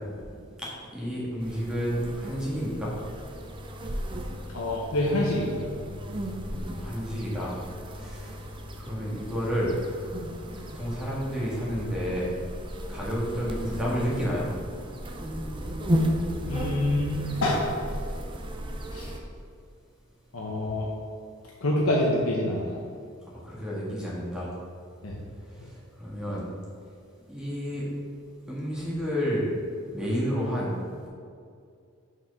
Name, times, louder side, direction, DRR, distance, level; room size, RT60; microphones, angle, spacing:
voice 1, 0.9-2.9 6.5-7.5 8.0-8.5 8.8-9.7 10.6-12.3 12.9-14.5 23.3-24.5 26.0-26.5 27.3-27.8 28.5-29.5 29.9-30.7, equal, 5° right, -6 dB, 1.9 m, -30 dB
sound 1, 1.4-19.2, equal, 25° right, 0.6 m, -34 dB
voice 2, 4.5-5.7 16.5-17.1 17.4-17.6 18.9-19.1 20.3-20.9 21.6-22.8 25.0-25.2, left 1 dB, 75° left, -3 dB, 1.0 m, -26 dB
5.9 x 4.8 x 6.4 m, 2.3 s
head